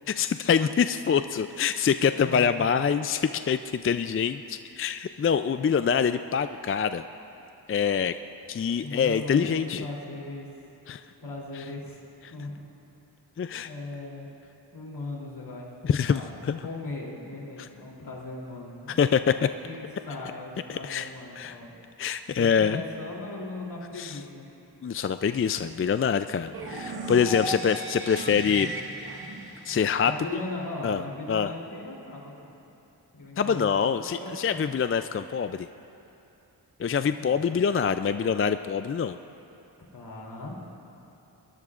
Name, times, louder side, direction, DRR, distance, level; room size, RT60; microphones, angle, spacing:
voice 1, 0.1-7.0 7.7-8.1 8.5-9.8 10.9-11.0 13.4-13.7 15.8-16.2 16.5-16.6 19.0-19.5 20.7-21.1 21.4-21.5 22.0-22.8 24.0-24.1 24.8-28.7 29.7-30.1 30.8-31.0 31.3-31.5 33.4-35.7 36.8-39.2, left 7 dB, 30° left, 10 dB, 0.4 m, -25 dB
voice 2, 2.2-2.6 8.8-10.5 11.2-12.0 12.3-12.6 13.6-14.3 14.7-19.0 19.6-21.7 22.4-24.5 27.4-27.6 30.0-32.5 33.1-34.8 37.1-37.6 39.9-40.6, left 2 dB, 70° left, -4 dB, 3.4 m, -38 dB
sound 1, 26.5-30.5, right 2 dB, 60° right, 1.7 m, -36 dB
21.5 x 19.0 x 2.5 m, 2.8 s
cardioid pair, 40°, 42 cm